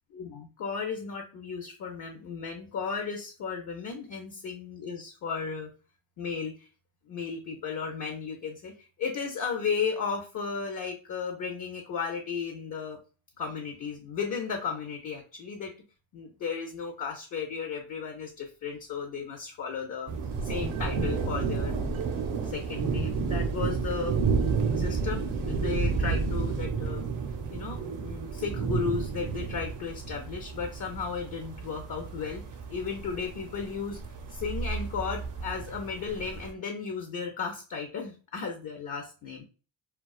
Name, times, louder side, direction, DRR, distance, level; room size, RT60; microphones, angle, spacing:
voice 1, 0.1-5.7 6.2-6.7 7.1-13.0 13.4-15.7 16.1-20.1 20.4-21.7 22.4-24.2 24.7-27.0 27.5-32.4 32.7-34.0 34.3-39.4, left 5 dB, 45° left, 3 dB, 0.5 m, -34 dB
sound 1, 20.1-36.5, right 5 dB, 45° right, 0.5 m, -31 dB
sound 2, 20.3-26.6, right 3 dB, 90° right, 0.6 m, -41 dB
2.3 x 2.3 x 2.3 m, 0.35 s
cardioid pair, 95°, 46 cm